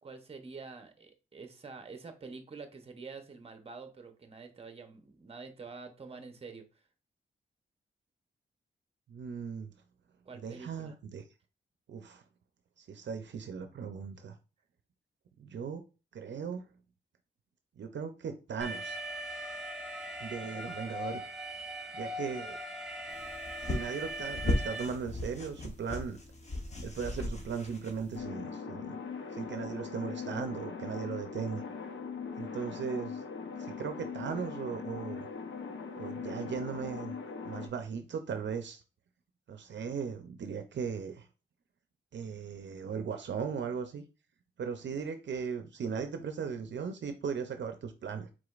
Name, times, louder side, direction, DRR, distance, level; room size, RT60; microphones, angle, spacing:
voice 1, 0.0-6.7 10.2-11.0, right 4 dB, 30° right, 0.8 m, -47 dB
voice 2, 9.1-9.7 10.4-11.2 11.9-12.2 12.8-14.3 15.4-15.8 16.1-16.7 17.8-19.0 20.2-21.2 21.9-22.6 23.7-26.2 26.8-29.0 29.3-31.6 32.4-33.2 33.6-35.3 36.0-37.2 37.4-38.8 39.5-41.3 42.1-44.0 44.6-48.3, right 6 dB, 70° right, 0.5 m, -37 dB
Alarm, 18.6-24.8, right 1 dB, ahead, 1.3 m, -40 dB
sound 1, 23.1-28.2, left 2 dB, 35° left, 1.0 m, -37 dB
sound 2, 28.1-37.7, left 5 dB, 80° left, 0.8 m, -40 dB
4.9 x 3.6 x 2.4 m
wide cardioid pair, 105°, 19 cm